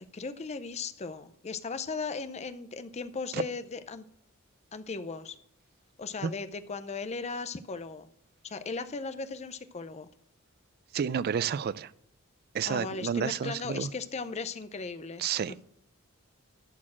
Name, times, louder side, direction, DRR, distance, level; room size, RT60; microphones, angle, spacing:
voice 1, 0.1-4.0 4.7-5.4 6.0-8.1 8.4-10.1 12.6-15.3, left 4 dB, 30° left, 12 dB, 0.5 m, -37 dB
voice 2, 10.9-11.9 12.5-13.9 15.2-15.6, right 7 dB, 45° right, 19 dB, 0.3 m, -30 dB
12.0 x 4.4 x 7.2 m, 0.74 s
head